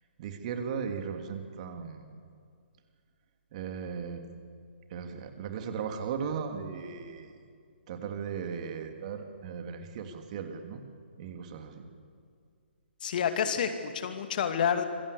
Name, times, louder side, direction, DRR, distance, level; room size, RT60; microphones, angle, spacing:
voice 1, 0.2-2.1 3.5-4.2 4.9-7.4 7.9-10.8 11.2-11.9, right 6 dB, 35° right, 5 dB, 2.8 m, -37 dB
voice 2, 13.0-14.8, left 7 dB, 45° left, 7 dB, 2.4 m, -29 dB
26.5 x 23.0 x 8.5 m, 2.2 s
figure-of-eight pair, 135°, 6 cm